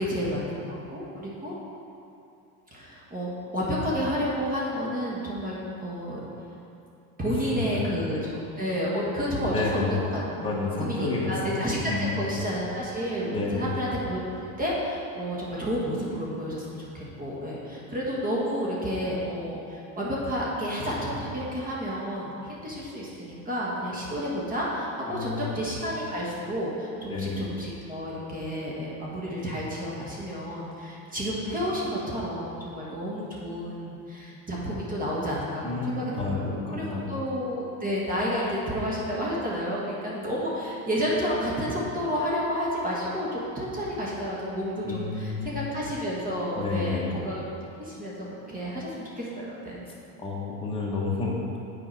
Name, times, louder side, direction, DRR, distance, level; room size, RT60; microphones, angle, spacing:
voice 1, 0.0-1.5 2.7-6.2 7.2-10.2 10.8-14.2 14.6-36.4 36.7-47.4 47.8-49.8, equal, 20° right, -5 dB, 1.3 m, -30 dB
voice 2, 7.2-7.8 9.4-10.0 10.4-11.5 11.9-12.2 13.2-13.8 25.1-25.5 27.1-27.4 35.6-37.1 44.8-45.5 46.6-47.1 50.2-51.6, left 3 dB, 10° left, -5 dB, 1.3 m, -30 dB
7.2 x 4.8 x 4.5 m, 2.7 s
supercardioid pair, 115°, 45 cm